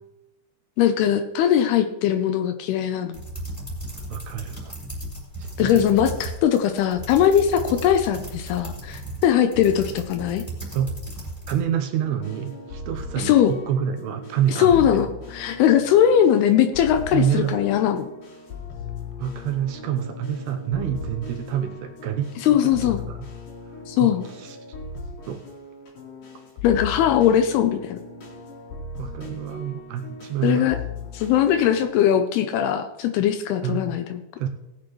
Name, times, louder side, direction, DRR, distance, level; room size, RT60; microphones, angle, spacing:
voice 1, 0.8-3.2 5.6-10.4 13.2-13.5 14.6-18.1 22.4-23.0 23.9-24.3 26.6-28.0 30.4-30.8 31.1-34.2, left 9 dB, 80° left, 8 dB, 2.4 m, -20 dB
sound 1, 3.1-11.6, right 1 dB, 5° left, 3.7 m, -35 dB
voice 2, 4.1-4.7 5.4-5.8 10.7-10.9 11.5-15.1 17.1-17.6 19.2-23.3 23.7-24.6 25.3-25.4 29.0-30.7 33.6-34.0 34.4-34.5, right 9 dB, 80° right, 5 dB, 2.7 m, -28 dB
sound 2, 12.0-31.9, left 4 dB, 55° left, 4.0 m, -38 dB
18.5 x 8.6 x 3.1 m, 0.95 s
omnidirectional pair, 5.0 m